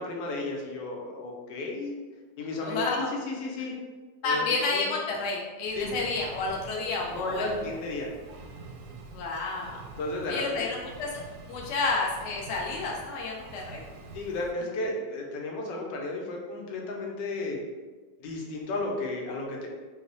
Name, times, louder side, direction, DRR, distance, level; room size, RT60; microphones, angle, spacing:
voice 1, 0.0-1.9 2.4-2.9 3.3-3.7 4.2-4.4 4.7-4.8 5.7-5.8 7.1-8.1 10.0-10.6 14.1-17.6 18.2-19.7, left 2 dB, 90° left, 0 dB, 1.3 m, -33 dB
voice 2, 2.6-3.1 4.2-7.5 9.1-9.8 10.3-11.2 11.5-13.8, left 3 dB, 60° left, -2 dB, 0.8 m, -30 dB
Engine, 5.7-14.5, right 3 dB, 85° right, 1.3 m, -46 dB
3.1 x 2.0 x 3.9 m, 1.3 s
omnidirectional pair, 1.9 m